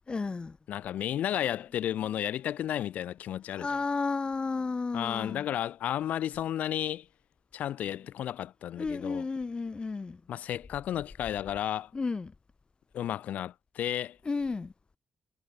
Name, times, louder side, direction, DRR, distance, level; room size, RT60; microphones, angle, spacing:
voice 1, 0.1-0.6 3.5-5.4 8.8-10.2 11.9-12.3 14.3-14.7, left 4 dB, 40° left, 4.2 m, -32 dB
voice 2, 0.7-3.7 4.9-7.0 7.5-9.3 10.3-11.9 12.9-14.2, left 11 dB, 80° left, 7.0 m, -33 dB
supercardioid pair, 55°, 3 cm